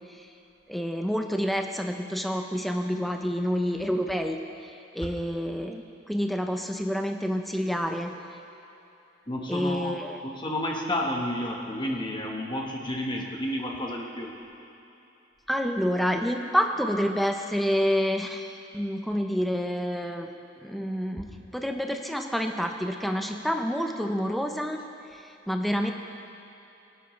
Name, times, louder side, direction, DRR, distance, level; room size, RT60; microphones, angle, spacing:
voice 1, 0.7-4.4 4.9-8.1 9.5-10.2 15.5-20.3 20.6-21.3 21.5-24.8 25.1-25.9, equal, ahead, 4 dB, 0.6 m, -28 dB
voice 2, 9.3-10.0 10.3-14.3, left 1 dB, 25° left, 0 dB, 1.3 m, -31 dB
18.0 x 11.0 x 3.2 m, 2.9 s
head